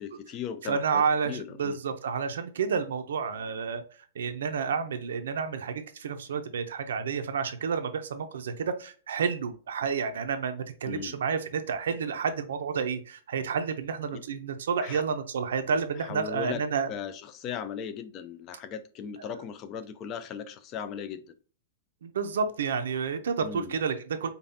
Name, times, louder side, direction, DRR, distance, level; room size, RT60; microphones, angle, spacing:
voice 1, 0.0-1.8 10.8-11.2 14.1-14.2 14.8-15.0 16.0-21.3 23.4-23.8, left 7 dB, 20° left, 0.3 m, -38 dB
voice 2, 0.6-3.8 4.1-16.9 22.0-24.3, right 6 dB, 85° right, 0.6 m, -30 dB
5.2 x 2.3 x 2.7 m
supercardioid pair, 175°, 0 cm